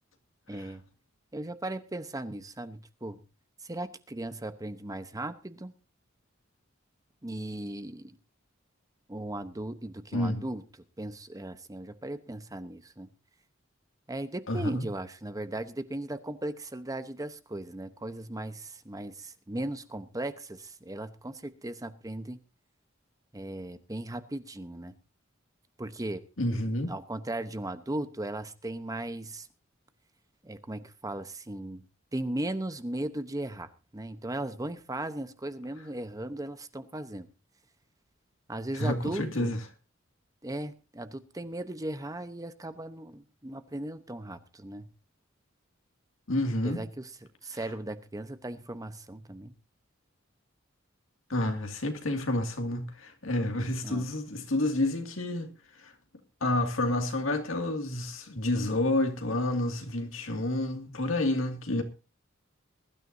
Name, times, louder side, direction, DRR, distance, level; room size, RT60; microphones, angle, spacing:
voice 1, 0.5-0.8 1.3-3.2 3.6-5.7 7.2-8.1 9.1-10.6 11.0-13.1 14.1-22.4 23.3-24.9 25.8-26.2 26.9-29.5 30.4-31.8 32.1-37.3 38.5-39.6 40.4-44.9 46.6-47.1 47.4-49.5 53.8-54.1, right 1 dB, 20° right, 0.9 m, -37 dB
voice 2, 10.1-10.4 14.5-14.8 26.4-26.9 38.7-39.6 46.3-46.8 51.3-55.5 55.8-55.9 56.4-61.8, left 1 dB, 75° left, 2.3 m, -29 dB
22.0 x 12.5 x 2.7 m
head